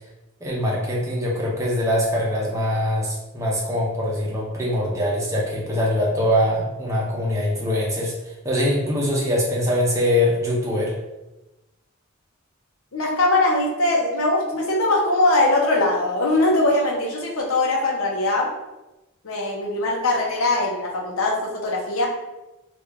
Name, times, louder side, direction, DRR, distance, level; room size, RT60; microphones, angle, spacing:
voice 1, 0.4-8.1 8.4-10.9, left 1 dB, 15° right, -4 dB, 0.7 m, -23 dB
voice 2, 12.9-18.5 19.2-22.1, left 2 dB, 80° left, -1 dB, 0.7 m, -21 dB
3.3 x 2.5 x 3.4 m, 1.0 s
head